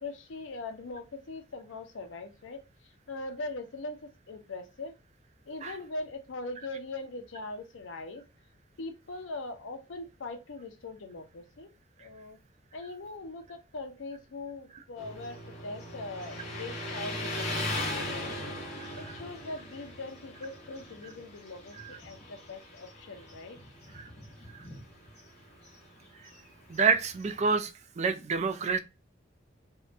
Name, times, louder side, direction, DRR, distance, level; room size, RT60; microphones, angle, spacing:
voice 1, 0.0-5.0 5.5-8.2 8.8-11.7 12.0-12.4 12.7-18.6 19.0-23.6, left 2 dB, 75° left, 0.5 m, -41 dB
Motorcycle, 15.0-27.6, left 1 dB, 35° left, 0.8 m, -39 dB
voice 2, 26.7-27.7 28.0-28.8, right 5 dB, 35° right, 0.3 m, -27 dB
2.6 x 2.2 x 2.4 m
head